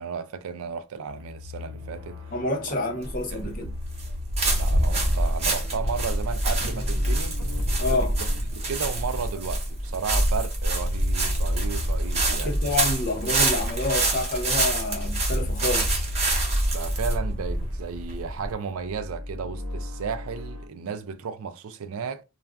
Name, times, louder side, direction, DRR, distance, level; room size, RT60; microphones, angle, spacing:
voice 1, 0.0-2.2 3.3-3.6 4.5-7.4 7.9-12.5 16.7-22.2, right 6 dB, 65° right, 0.4 m, -34 dB
sound 1, 1.1-20.7, left 2 dB, 85° right, 0.9 m, -40 dB
voice 2, 2.3-3.7 7.8-8.1 12.3-16.0, left 2 dB, 40° left, 0.7 m, -28 dB
sound 2, 3.0-18.5, right 1 dB, 30° right, 0.9 m, -26 dB
2.4 x 2.2 x 3.5 m
head